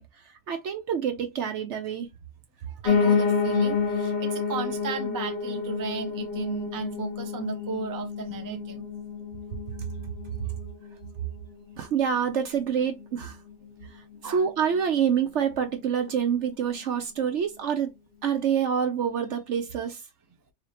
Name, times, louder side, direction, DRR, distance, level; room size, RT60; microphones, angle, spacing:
voice 1, 0.0-2.1 2.7-2.8 11.8-13.4 13.9-17.9 18.2-20.1, right 8 dB, 65° right, 0.8 m, -27 dB
voice 2, 2.8-8.8 14.2-14.4, right 5 dB, 25° right, 0.5 m, -35 dB
Piano, 2.9-12.0 12.4-13.5 13.8-13.9 14.1-14.2 14.5-14.6 15.1-15.2, left 5 dB, 45° left, 0.6 m, -29 dB
4.0 x 2.6 x 3.2 m
omnidirectional pair, 1.5 m